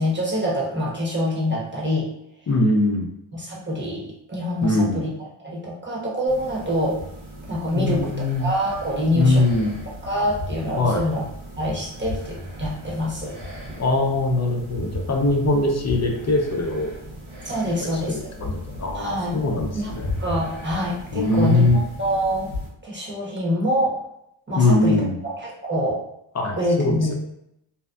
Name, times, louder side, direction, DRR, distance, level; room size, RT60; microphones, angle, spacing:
voice 1, 0.0-2.1 3.3-5.1 5.4-7.0 7.5-8.1 8.4-9.6 10.0-11.2 11.6-13.4 17.4-18.2 18.9-19.4 19.7-22.5 22.8-24.0 24.5-26.0 26.6-27.1, equal, 25° right, -4 dB, 1.0 m, -25 dB
voice 2, 2.5-3.1 4.6-5.0 7.7-8.5 9.1-9.7 10.8-11.1 13.8-16.9 17.7-20.1 21.1-21.8 24.6-25.2 26.3-27.1, left 2 dB, 35° left, 1 dB, 0.6 m, -21 dB
sound 1, 6.3-22.7, left 1 dB, 85° right, 0.9 m, -36 dB
2.6 x 2.2 x 2.3 m, 0.78 s
cardioid pair, 55°, 49 cm